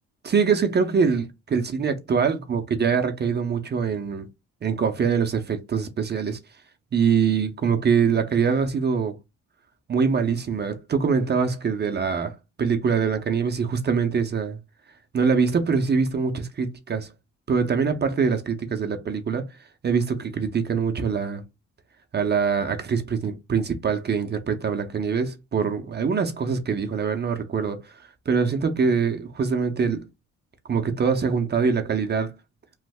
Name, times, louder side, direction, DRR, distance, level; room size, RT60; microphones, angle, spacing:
voice 1, 0.2-4.3 4.6-6.4 6.9-9.2 9.9-14.6 15.1-17.1 17.5-19.5 19.8-21.4 22.1-27.8 28.3-30.1 30.7-32.3, right 6 dB, 35° right, 0.6 m, -24 dB
3.1 x 2.0 x 3.4 m
cardioid pair, 90°, 30 cm